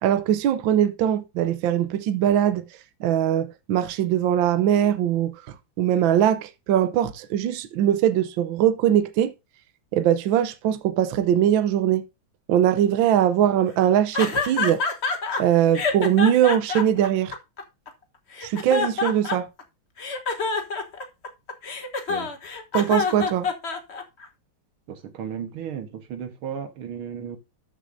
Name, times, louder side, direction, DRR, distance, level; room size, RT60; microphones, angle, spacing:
voice 1, 0.0-2.6 3.0-5.3 5.8-9.3 9.9-12.0 12.5-14.8 15.4-17.3 18.4-19.5 22.7-23.5, right 10 dB, 70° right, 1.5 m, -21 dB
sound 1, 14.1-15.4 15.7-17.9 18.3-19.6 20.0-24.3, left 4 dB, 35° left, 1.2 m, -26 dB
voice 2, 24.9-27.4, right 8 dB, 90° right, 2.1 m, -34 dB
13.0 x 6.4 x 2.6 m
omnidirectional pair, 2.3 m